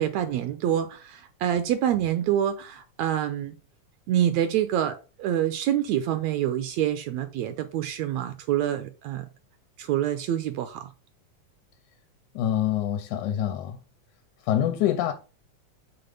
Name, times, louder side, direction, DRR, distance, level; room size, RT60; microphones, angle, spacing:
voice 1, 0.0-3.6 4.1-9.3 9.8-10.9, right 11 dB, 80° right, 1.6 m, -26 dB
voice 2, 12.4-13.8 14.4-15.1, left 11 dB, 90° left, 2.1 m, -25 dB
5.9 x 3.7 x 5.1 m
omnidirectional pair, 3.5 m